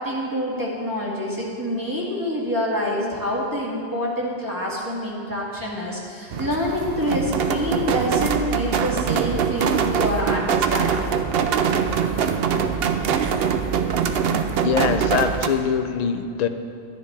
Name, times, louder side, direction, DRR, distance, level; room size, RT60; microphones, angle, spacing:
voice 1, 0.0-11.1 13.3-13.5, left 1 dB, 20° right, -6 dB, 1.9 m, -26 dB
sound 1, 6.3-15.5, right 7 dB, 75° right, 0.8 m, -23 dB
voice 2, 14.6-16.5, left 7 dB, 50° left, 9 dB, 0.6 m, -23 dB
12.5 x 10.0 x 3.4 m, 2.7 s
omnidirectional pair, 1.0 m